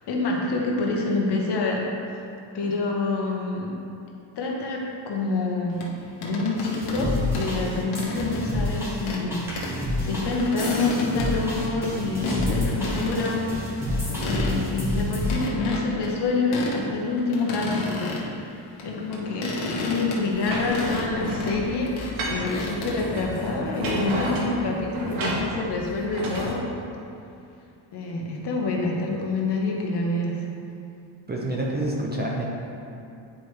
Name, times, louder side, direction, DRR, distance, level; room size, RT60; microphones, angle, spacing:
voice 1, 0.0-1.8 2.5-3.7 4.3-5.8 6.2-9.4 10.0-14.0 14.2-21.9 22.3-26.6 27.9-30.4, left 3 dB, 55° left, -1 dB, 1.2 m, -27 dB
sound 1, 5.8-7.1 7.3-8.5 9.0-9.3 9.6-9.8 10.1-12.0 12.2-12.5 12.8-13.3 13.6-13.7 14.1-14.8 15.3-16.8 17.1-18.3 18.8-22.9, left 2 dB, 80° left, 1.3 m, -32 dB
sound 2, 6.6-15.4, left 1 dB, 5° right, 1.5 m, -29 dB
sound 3, 20.3-26.5, right 1 dB, 75° right, 1.4 m, -32 dB
voice 2, 31.3-32.5, right 1 dB, 20° right, -2 dB, 0.7 m, -27 dB
9.0 x 4.7 x 3.3 m, 2.6 s
cardioid pair, 135°, 48 cm